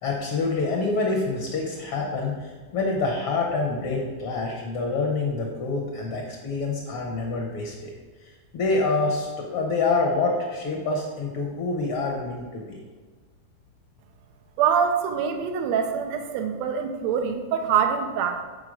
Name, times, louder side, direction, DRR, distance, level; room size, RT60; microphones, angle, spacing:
voice 1, 0.0-7.9 8.5-12.8, left 3 dB, 60° left, 0 dB, 1.5 m, -26 dB
voice 2, 14.6-18.4, right 7 dB, 75° right, 5 dB, 1.8 m, -24 dB
7.8 x 4.6 x 4.9 m, 1.4 s
omnidirectional pair, 3.5 m